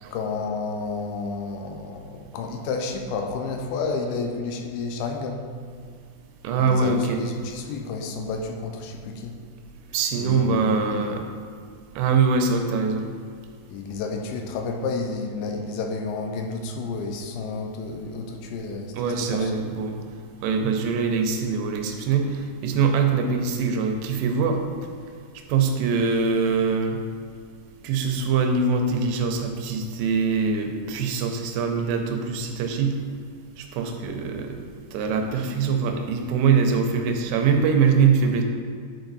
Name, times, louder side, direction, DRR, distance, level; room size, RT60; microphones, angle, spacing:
voice 1, 0.1-5.5 6.6-9.4 10.2-11.2 13.7-19.5, left 4 dB, 85° left, 3 dB, 2.5 m, -31 dB
voice 2, 6.4-7.2 9.9-11.2 12.0-13.1 19.0-20.0 20.4-24.6 25.5-27.0 27.8-32.9 33.6-34.6 34.9-38.4, right 5 dB, 85° right, 4 dB, 2.8 m, -23 dB
10.5 x 4.6 x 4.0 m, 2.1 s
omnidirectional pair, 4.7 m